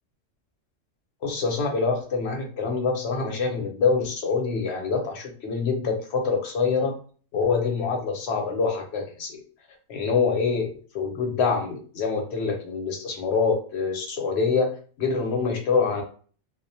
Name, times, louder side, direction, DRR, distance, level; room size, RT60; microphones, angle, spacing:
voice 1, 1.2-7.0 7.3-9.4 9.9-10.7 10.9-16.0, left 5 dB, 65° left, 2 dB, 0.9 m, -25 dB
2.4 x 2.1 x 2.6 m, 0.42 s
omnidirectional pair, 1.3 m